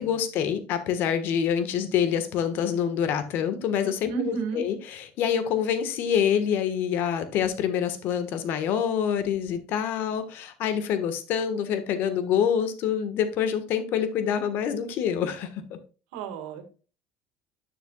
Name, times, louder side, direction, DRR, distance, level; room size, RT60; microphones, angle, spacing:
voice 1, 0.0-15.8, left 8 dB, 60° left, 10 dB, 1.4 m, -26 dB
voice 2, 4.1-4.6 16.1-16.7, right 6 dB, 85° right, 7 dB, 1.8 m, -32 dB
9.4 x 7.0 x 2.3 m, 0.34 s
supercardioid pair, 105°, 4 cm